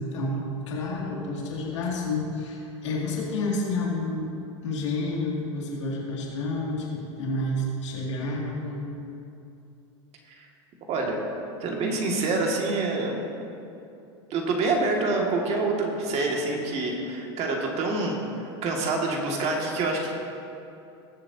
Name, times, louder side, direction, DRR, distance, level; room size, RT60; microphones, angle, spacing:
voice 1, 0.0-4.4 4.6-8.9, left 2 dB, 85° left, -3 dB, 2.5 m, -30 dB
voice 2, 10.9-11.2 11.6-13.4 14.3-20.1, right 3 dB, 45° right, 0 dB, 2.2 m, -27 dB
19.0 x 7.5 x 2.9 m, 2.7 s
hypercardioid pair, 100°, 15 cm